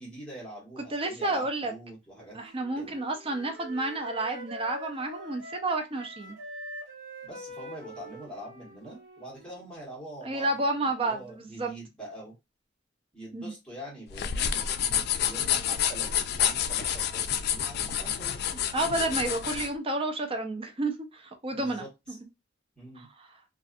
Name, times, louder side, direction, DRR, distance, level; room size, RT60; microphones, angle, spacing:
voice 1, 0.0-2.9 7.2-12.3 13.1-18.5 21.5-22.2 22.8-23.1, right 1 dB, 5° left, 1.3 m, -44 dB
voice 2, 0.9-1.7 2.3-6.4 10.2-11.7 13.3-13.5 18.7-21.8, right 2 dB, 30° right, 0.5 m, -30 dB
Wind instrument woodwind instrument, 2.1-9.8, equal, 85° right, 1.2 m, -45 dB
sound 1, 14.1-19.7, left 9 dB, 60° left, 0.3 m, -29 dB
2.6 x 2.4 x 2.4 m
head